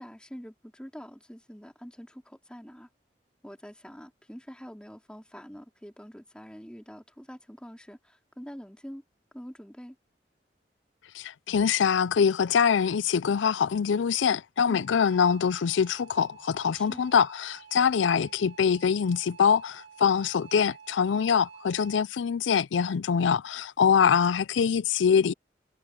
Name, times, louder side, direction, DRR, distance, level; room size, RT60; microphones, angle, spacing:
voice 1, 0.0-2.9 3.4-9.0 9.3-10.0 14.7-14.8 16.7-17.1, equal, 5° left, 4.4 m, -45 dB
voice 2, 11.2-25.3, left 7 dB, 85° left, 0.4 m, -24 dB
sound 1, 14.8-22.0, right 7 dB, 80° right, 1.8 m, -50 dB
head